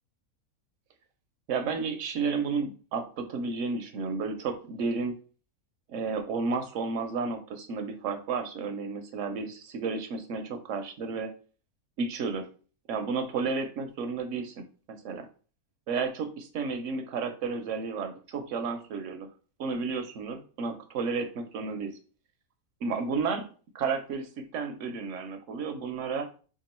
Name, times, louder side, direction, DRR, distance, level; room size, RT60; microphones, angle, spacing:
voice 1, 1.5-5.2 5.9-11.3 12.0-12.5 12.9-15.3 15.9-19.3 19.6-22.0 22.8-23.5 23.7-26.3, right 4 dB, 65° right, 7 dB, 0.8 m, -32 dB
3.7 x 2.3 x 4.2 m, 0.38 s
omnidirectional pair, 1.6 m